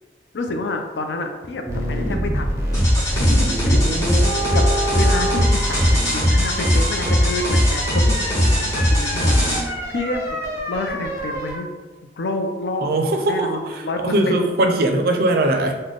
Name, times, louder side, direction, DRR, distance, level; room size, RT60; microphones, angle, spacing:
voice 1, 0.3-2.6 3.2-4.2 4.5-4.6 4.9-5.9 6.1-10.4 10.7-11.7 12.2-12.9 13.3-14.6, left 2 dB, 75° left, 5 dB, 0.4 m, -28 dB
sound 1, 1.7-11.6, equal, 15° right, 0.7 m, -26 dB
sound 2, 2.7-9.6, equal, 20° left, 1.1 m, -19 dB
voice 2, 12.8-15.7, right 1 dB, 55° right, 4 dB, 0.4 m, -20 dB
3.2 x 2.1 x 3.9 m, 1.3 s
head